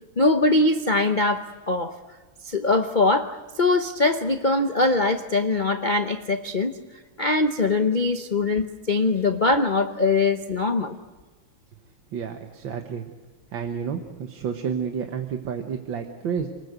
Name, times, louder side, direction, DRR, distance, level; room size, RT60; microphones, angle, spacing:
voice 1, 0.2-1.9 2.4-6.7 7.2-10.9, left 3 dB, 75° left, 7 dB, 0.4 m, -22 dB
voice 2, 12.1-13.1 13.5-16.5, right 7 dB, 60° right, 5 dB, 1.9 m, -30 dB
28.0 x 20.0 x 8.1 m, 1.3 s
omnidirectional pair, 2.4 m